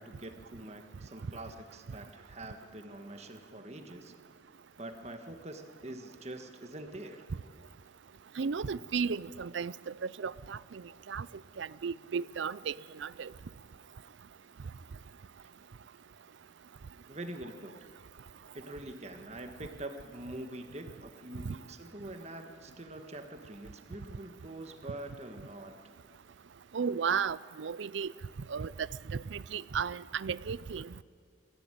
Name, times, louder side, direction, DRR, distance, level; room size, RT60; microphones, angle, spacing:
voice 1, 0.0-4.2 4.8-7.3 15.4-15.5 17.1-17.9 18.5-25.7, right 1 dB, 35° right, 1.7 m, -45 dB
voice 2, 8.4-11.3 11.6-13.3 21.4-21.6 26.7-28.1 28.5-30.9, right 6 dB, 75° right, 0.5 m, -34 dB
23.0 x 14.5 x 9.3 m
head